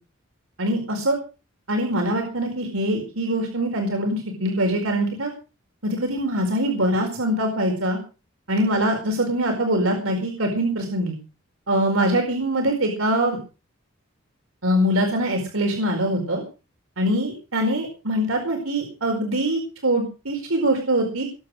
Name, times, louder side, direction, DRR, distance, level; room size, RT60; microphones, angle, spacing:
voice 1, 0.6-1.2 1.7-5.3 5.8-8.0 8.5-11.2 11.7-13.4 14.6-16.4 17.0-21.2, right 1 dB, 90° right, 1 dB, 4.7 m, -23 dB
21.5 x 8.4 x 6.4 m, 0.34 s
head